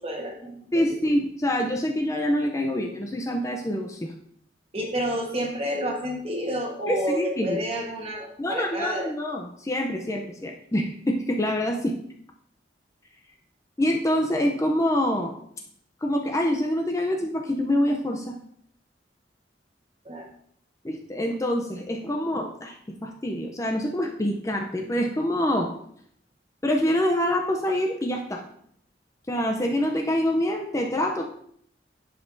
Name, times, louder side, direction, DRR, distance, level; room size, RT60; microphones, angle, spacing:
voice 1, 0.0-0.6 4.7-9.1 20.0-20.3, equal, 35° right, 1 dB, 1.2 m, -30 dB
voice 2, 0.7-4.1 6.9-7.6 8.4-11.9 13.8-15.4 16.0-18.3 20.8-25.8 26.6-28.4 29.3-31.3, left 1 dB, 15° left, 2 dB, 0.5 m, -26 dB
10.0 x 5.4 x 2.6 m, 0.66 s
head